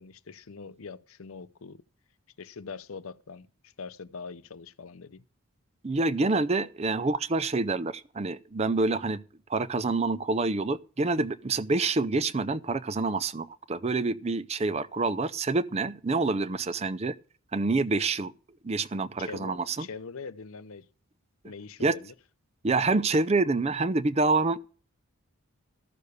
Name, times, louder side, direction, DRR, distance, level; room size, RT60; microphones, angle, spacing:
voice 1, 0.0-1.8 2.4-5.2 19.2-20.9 21.4-22.1, left 5 dB, 75° left, 0.6 m, -43 dB
voice 2, 5.8-9.2 9.5-17.2 17.5-18.3 18.6-19.9 21.8-22.0 22.6-24.6, right 3 dB, 30° right, 0.5 m, -27 dB
13.5 x 6.8 x 6.6 m
head